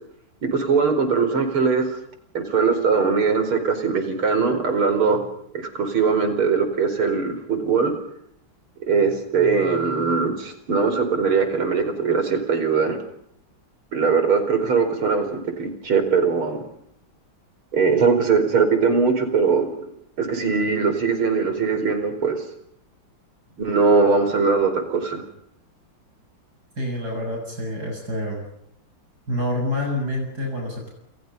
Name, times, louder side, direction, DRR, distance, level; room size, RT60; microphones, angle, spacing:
voice 1, 0.4-1.9 2.3-5.2 5.5-7.9 8.9-13.0 13.9-16.6 17.7-19.7 20.2-22.4 23.6-25.2, right 5 dB, 85° right, 8 dB, 5.5 m, -21 dB
voice 2, 26.8-28.4 29.3-30.9, left 1 dB, 50° right, 0 dB, 7.6 m, -27 dB
29.5 x 29.0 x 5.5 m, 0.73 s
omnidirectional pair, 2.3 m